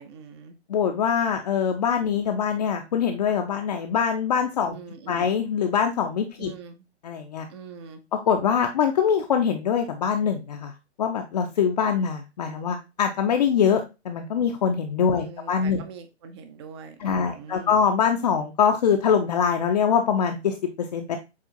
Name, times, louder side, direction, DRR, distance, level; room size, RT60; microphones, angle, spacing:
voice 1, 0.0-0.6 4.7-5.3 6.4-6.8 7.5-8.0 15.2-17.8, right 5 dB, 25° right, 8 dB, 0.4 m, -43 dB
voice 2, 0.7-4.8 5.1-6.5 7.0-7.5 8.1-10.7 11.0-15.8 17.0-21.2, left 7 dB, 40° left, 3 dB, 0.5 m, -23 dB
7.2 x 2.4 x 2.7 m, 0.26 s
figure-of-eight pair, 130°, 34 cm